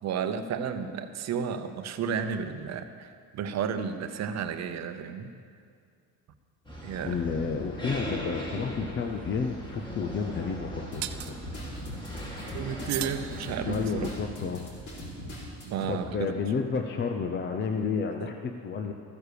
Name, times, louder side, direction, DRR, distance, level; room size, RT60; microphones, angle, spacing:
voice 1, 0.0-5.3 6.8-7.2 12.5-14.1 15.6-16.3 18.2-18.3, right 7 dB, 40° right, 9 dB, 0.8 m, -32 dB
sound 1, 6.6-14.2, equal, 10° left, 2.1 m, -39 dB
voice 2, 7.0-11.3 13.6-14.6 15.9-18.9, left 5 dB, 30° left, 5 dB, 0.6 m, -31 dB
sound 2, 9.0-9.2 11.0-11.4 12.9-14.0, right 14 dB, 90° right, 0.8 m, -37 dB
sound 3, 10.9-15.9, left 1 dB, 45° left, 3.7 m, -41 dB
14.0 x 9.4 x 6.8 m, 2.2 s
cardioid pair, 150°, 40 cm